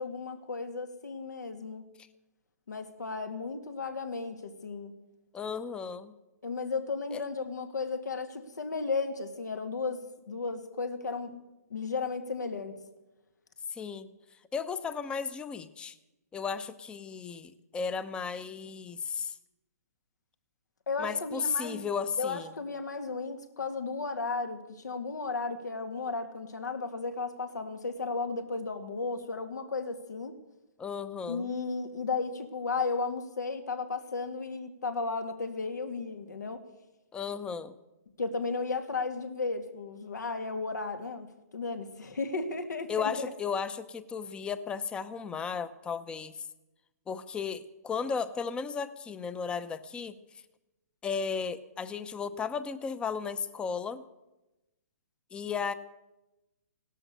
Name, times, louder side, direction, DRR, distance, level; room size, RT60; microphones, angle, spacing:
voice 1, 0.0-1.9 2.7-4.9 6.4-11.4 11.7-12.7 20.9-21.8 22.2-30.4 31.3-36.6 38.2-41.3 41.5-43.3, left 4 dB, 85° left, 8 dB, 2.2 m, -34 dB
voice 2, 5.3-6.1 7.1-7.2 13.7-14.1 14.5-16.0 16.3-19.4 21.0-22.5 30.8-31.5 37.1-37.8 42.9-46.5 47.1-50.2 51.0-54.0 55.3-55.7, left 6 dB, 10° left, 15 dB, 0.7 m, -34 dB
17.0 x 12.5 x 6.7 m, 1.0 s
hypercardioid pair, 145°, 9 cm